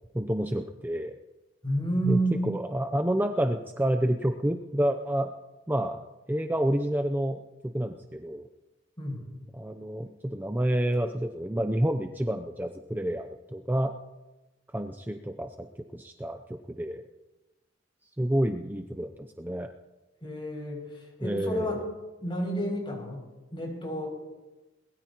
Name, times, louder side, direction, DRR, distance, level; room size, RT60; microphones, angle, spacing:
voice 1, 0.1-1.2 2.1-5.3 5.7-6.0 6.3-8.4 9.6-13.9 14.7-15.7 15.9-17.0 18.2-19.7 21.2-21.7, right 1 dB, 10° right, 6 dB, 0.6 m, -29 dB
voice 2, 1.6-2.5 9.0-9.3 20.2-21.8 22.2-23.3 23.5-24.1, right 1 dB, 25° left, 0 dB, 6.7 m, -31 dB
22.5 x 20.5 x 3.0 m, 1.1 s
head